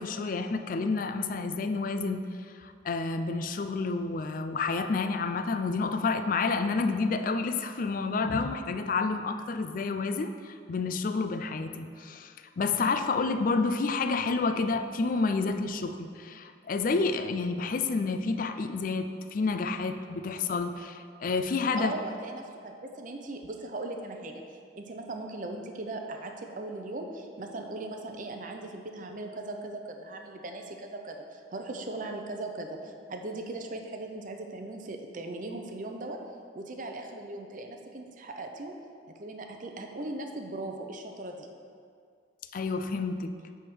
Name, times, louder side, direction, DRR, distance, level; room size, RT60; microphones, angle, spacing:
voice 1, 0.0-21.9 42.5-43.4, left 4 dB, 45° left, 9 dB, 0.4 m, -29 dB
voice 2, 21.7-36.2 36.5-38.7 39.2-41.5, right 2 dB, 45° right, 4 dB, 0.6 m, -39 dB
8.5 x 3.6 x 6.2 m, 2.3 s
head